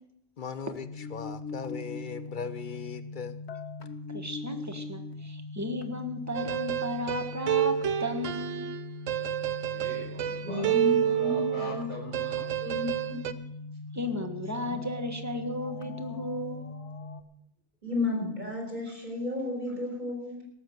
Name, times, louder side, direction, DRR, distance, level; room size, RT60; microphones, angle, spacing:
voice 1, 0.4-3.4, left 6 dB, 45° left, 0.8 m, -38 dB
sound 1, 0.8-17.2, left 3 dB, 65° left, 1.3 m, -41 dB
voice 2, 4.1-8.7 12.4-12.5 13.9-16.6, left 1 dB, 15° right, 1.4 m, -34 dB
sound 2, 6.3-11.8 12.1-13.3, right 11 dB, 85° right, 1.1 m, -29 dB
voice 3, 9.7-12.5, equal, 65° right, 5.5 m, -42 dB
voice 4, 10.4-11.9 12.2-12.3 12.6-13.4 14.6-14.7 17.8-20.4, left 2 dB, 40° right, 5.2 m, -33 dB
18.0 x 7.1 x 7.9 m
omnidirectional pair, 1.3 m